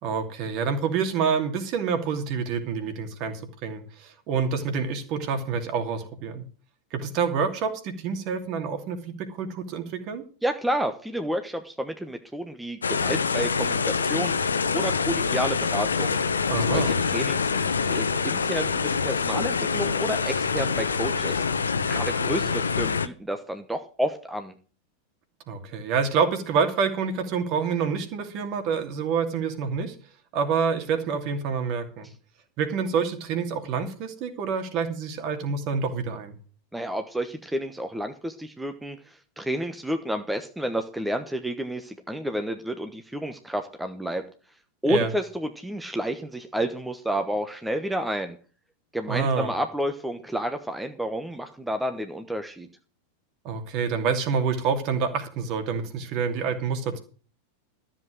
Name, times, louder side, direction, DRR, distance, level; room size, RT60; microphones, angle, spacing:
voice 1, 0.0-6.4 6.9-10.2 16.5-16.9 25.5-29.9 30.3-32.1 32.6-36.4 44.9-45.1 49.1-49.5 53.4-57.0, right 6 dB, 40° right, 7 dB, 2.6 m, -27 dB
voice 2, 10.4-14.3 14.7-16.2 16.7-17.5 17.9-21.6 21.9-24.5 36.7-39.0 39.4-44.2 44.8-48.4 48.9-52.7, equal, 5° right, 7 dB, 1.2 m, -30 dB
sound 1, 12.8-23.1, left 5 dB, 75° left, 0.9 m, -25 dB
13.5 x 7.7 x 6.4 m, 0.38 s
figure-of-eight pair, 90°, 0 cm